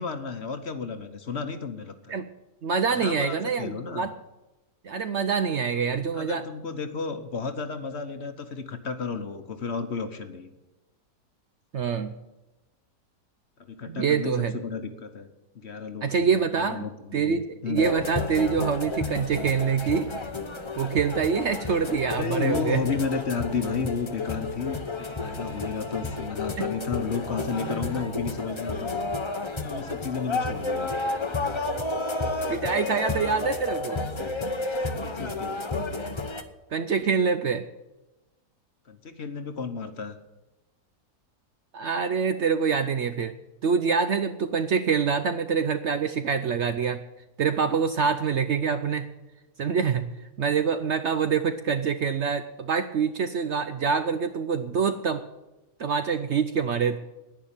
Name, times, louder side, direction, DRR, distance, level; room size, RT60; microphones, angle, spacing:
voice 1, 0.0-2.2 2.9-4.0 5.7-5.8 6.1-10.5 13.6-15.3 15.5-17.8 22.2-29.0 29.6-30.9 35.0-35.6 38.9-40.2, left 5 dB, 50° left, 8 dB, 1.1 m, -33 dB
voice 2, 2.6-4.1 4.8-6.4 11.7-12.1 13.9-14.5 16.0-16.8 17.1-20.1 20.8-22.9 26.6-26.7 32.5-34.0 36.7-37.6 41.7-43.3 43.6-47.0 47.4-49.1 49.6-50.0 50.4-55.2 55.8-57.0, right 6 dB, 60° right, 9 dB, 0.8 m, -25 dB
sound 1, 17.8-36.4, left 3 dB, 25° left, 0.7 m, -31 dB
11.0 x 9.7 x 8.8 m, 1.0 s
omnidirectional pair, 1.6 m